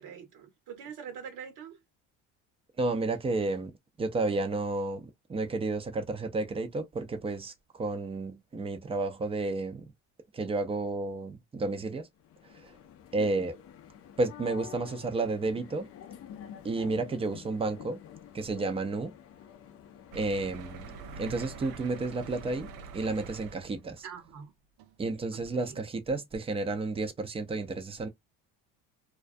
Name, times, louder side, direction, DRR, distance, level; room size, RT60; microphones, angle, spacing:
voice 1, 0.0-1.8 13.1-13.4 24.0-24.5 25.3-25.8, right 7 dB, 60° right, 1.0 m, -44 dB
voice 2, 2.8-3.7 4.0-9.9 10.3-12.1 12.5-12.7 13.1-13.6 14.2-15.9 16.6-18.0 18.3-19.1 20.1-20.9 21.2-24.1 25.0-28.1, right 3 dB, 15° right, 0.5 m, -31 dB
sound 1, 12.2-23.0, left 10 dB, 40° left, 0.5 m, -49 dB
sound 2, 20.1-24.0 24.8-24.9 25.3-25.4, right 5 dB, 80° right, 0.5 m, -45 dB
2.3 x 2.2 x 2.5 m
cardioid pair, 120°, 36 cm